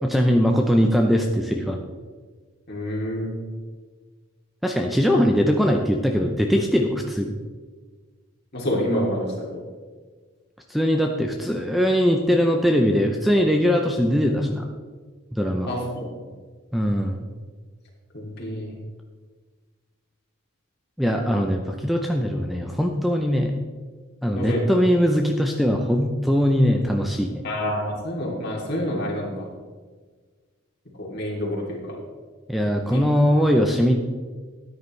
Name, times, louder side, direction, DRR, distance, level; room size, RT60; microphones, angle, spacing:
voice 1, 0.0-1.8 4.6-7.3 10.7-14.7 15.3-15.7 16.7-17.3 21.0-23.6 24.2-27.4 32.5-34.0, equal, ahead, 2 dB, 0.5 m, -21 dB
voice 2, 2.7-3.3 8.5-9.5 15.6-16.1 18.1-18.7 24.3-24.7 27.4-29.5 31.0-32.0 32.9-33.0, equal, 50° left, -3 dB, 2.9 m, -27 dB
13.5 x 9.6 x 3.2 m, 1.5 s
head